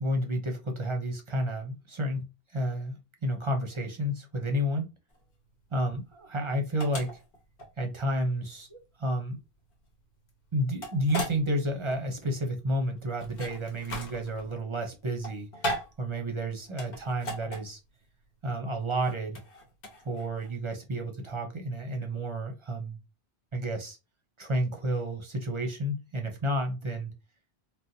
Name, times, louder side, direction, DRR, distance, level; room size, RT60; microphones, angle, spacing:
voice 1, 0.0-4.9 5.7-7.2 7.8-9.4 10.5-17.8 18.4-19.4 20.0-23.0 23.5-24.0 24.4-27.1, equal, 35° right, 0.6 m, -31 dB
sound 1, 5.1-20.5, equal, 60° left, 1.1 m, -39 dB
3.8 x 2.2 x 2.6 m
omnidirectional pair, 1.1 m